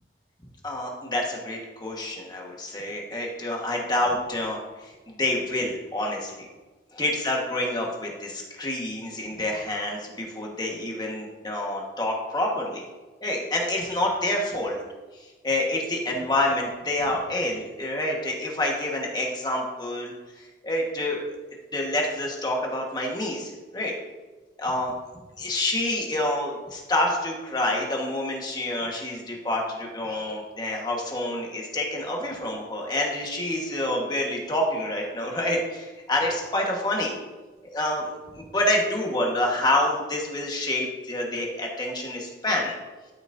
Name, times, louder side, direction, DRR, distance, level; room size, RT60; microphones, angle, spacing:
voice 1, 0.6-6.5 6.9-12.8 13.2-14.8 15.4-20.1 20.6-21.4 21.7-23.9 24.6-24.9 25.4-37.1 37.6-42.7, left 1 dB, 25° left, -1 dB, 1.5 m, -27 dB
12.5 x 6.2 x 2.7 m, 1.3 s
head